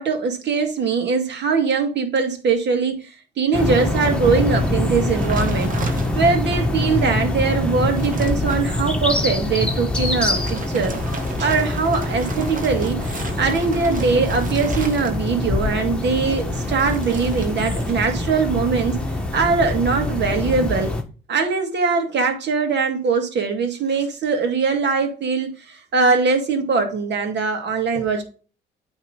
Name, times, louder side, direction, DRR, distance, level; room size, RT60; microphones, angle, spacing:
voice 1, 0.0-3.1 3.4-5.8 6.1-11.0 11.4-19.0 19.3-20.9 21.3-25.5 25.9-28.2, right 4 dB, 60° right, 5 dB, 2.1 m, -21 dB
sound 1, 3.5-21.0, left 2 dB, 5° left, 1.6 m, -24 dB
sound 2, 5.2-6.5 7.0-7.1 7.5-8.7 10.2-15.5 16.5-18.2 18.5-18.9, right 4 dB, 40° right, 1.6 m, -35 dB
8.8 x 3.6 x 5.2 m, 0.36 s
cardioid pair, 90°, 20 cm